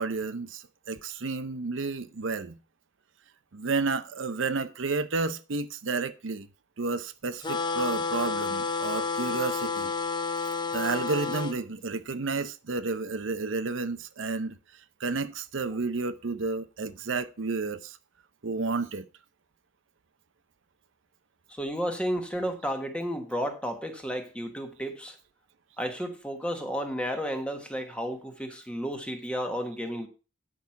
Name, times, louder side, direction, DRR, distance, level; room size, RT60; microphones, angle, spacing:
voice 1, 0.0-2.6 3.5-6.5 6.8-9.9 10.7-14.6 15.0-18.0 18.4-19.1, right 4 dB, 65° right, 0.7 m, -31 dB
sound 1, 7.4-11.6, left 4 dB, 25° left, 0.6 m, -30 dB
voice 2, 21.5-25.2 25.8-30.1, equal, 5° left, 1.4 m, -32 dB
9.5 x 6.1 x 5.7 m
head